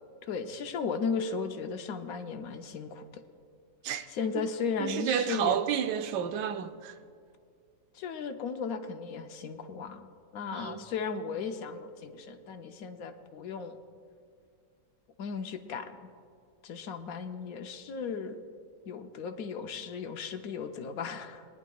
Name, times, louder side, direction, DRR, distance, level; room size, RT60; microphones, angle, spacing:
voice 1, 0.2-3.2 4.1-5.6 7.9-10.1 10.3-13.8 15.2-16.0 16.6-18.4 18.9-21.5, left 5 dB, 65° left, 1.0 m, -36 dB
voice 2, 4.8-7.0 10.5-10.8, right 9 dB, 80° right, 1.2 m, -31 dB
20.5 x 10.0 x 2.3 m
omnidirectional pair, 1.9 m